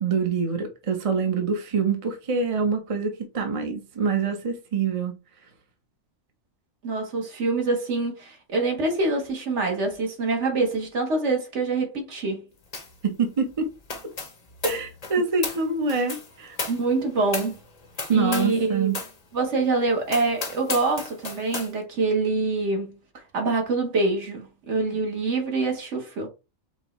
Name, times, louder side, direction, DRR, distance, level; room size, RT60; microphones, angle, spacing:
voice 1, 0.0-5.1 13.0-13.7 14.6-16.6 18.1-19.0, right 5 dB, 30° right, 0.7 m, -25 dB
voice 2, 6.8-12.5 16.7-17.6 18.1-18.9 19.3-23.0 23.3-26.3, right 3 dB, 55° right, 1.4 m, -25 dB
sound 1, 12.7-13.0 13.3-18.6 18.9-19.2 19.6-19.7 20.1-21.7, left 3 dB, 35° left, 0.7 m, -34 dB
5.3 x 2.3 x 3.0 m
omnidirectional pair, 1.4 m